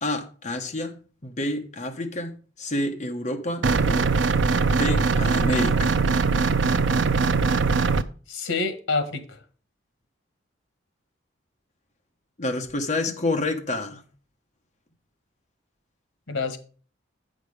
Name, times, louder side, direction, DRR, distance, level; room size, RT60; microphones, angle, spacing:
voice 1, 0.0-4.1 4.7-5.9 12.4-14.0, left 2 dB, 35° left, 3 dB, 1.1 m, -29 dB
sound 1, 3.6-8.0, right 4 dB, 65° right, 0.5 m, -21 dB
voice 2, 8.3-9.4 16.3-16.6, left 3 dB, 85° left, 9 dB, 1.5 m, -27 dB
8.1 x 6.4 x 4.9 m, 0.39 s
head